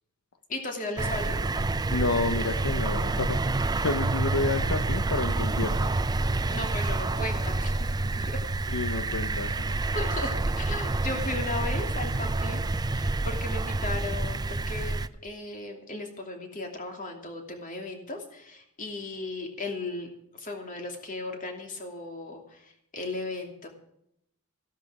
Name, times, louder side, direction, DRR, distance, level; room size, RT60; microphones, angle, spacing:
voice 1, 0.5-1.4 6.5-8.4 9.9-12.6 13.0-23.7, left 2 dB, 35° left, 3 dB, 2.7 m, -36 dB
sound 1, 1.0-15.1, right 2 dB, 20° right, 0.5 m, -28 dB
voice 2, 1.9-5.9 8.7-9.7, left 3 dB, 75° left, 9 dB, 0.9 m, -30 dB
14.0 x 12.5 x 4.9 m, 0.75 s
head